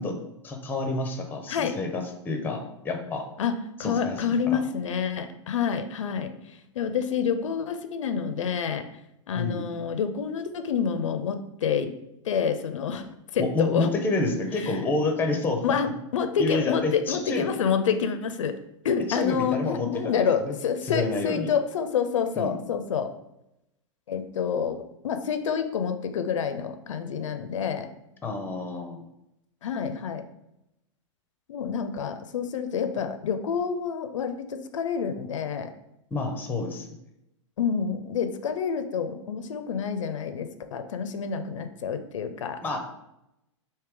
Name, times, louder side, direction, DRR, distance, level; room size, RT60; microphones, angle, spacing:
voice 1, 0.0-3.2 3.8-4.6 9.3-9.7 13.4-15.8 16.4-17.5 19.1-20.6 20.8-21.5 22.4-22.6 28.2-29.1 36.1-36.9 42.6-42.8, left 3 dB, 10° left, 5 dB, 0.5 m, -29 dB
voice 2, 1.5-1.8 3.4-6.3 6.8-8.9 9.3-11.9 12.2-13.1 13.3-13.9 14.6-14.7 15.6-18.5 18.8-23.1 24.1-27.9 29.6-30.3 31.5-35.7 37.6-42.8, left 7 dB, 80° left, 9 dB, 0.4 m, -28 dB
3.2 x 2.7 x 3.4 m, 0.85 s
hypercardioid pair, 115°, 16 cm